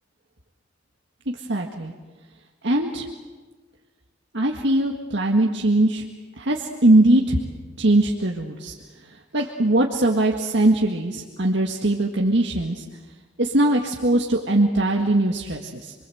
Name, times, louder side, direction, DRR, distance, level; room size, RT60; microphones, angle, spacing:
voice 1, 1.3-1.9 2.6-3.1 4.3-6.0 6.4-7.4 7.8-8.7 9.3-12.8 13.4-15.9, right 1 dB, 70° right, 0 dB, 1.9 m, -21 dB
28.0 x 23.0 x 7.9 m, 1.3 s
head